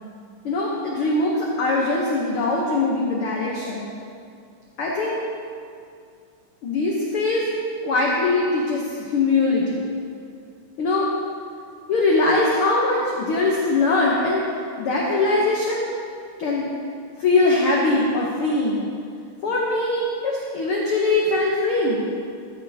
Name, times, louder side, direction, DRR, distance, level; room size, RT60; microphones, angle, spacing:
voice 1, 0.4-3.9 4.8-5.2 6.6-7.5 7.8-9.9 10.8-11.1 11.9-14.5 14.8-15.9 16.4-16.7 17.2-18.8 19.4-22.0, left 2 dB, 85° left, -3 dB, 1.2 m, -21 dB
13.0 x 8.6 x 2.8 m, 2.3 s
omnidirectional pair, 3.8 m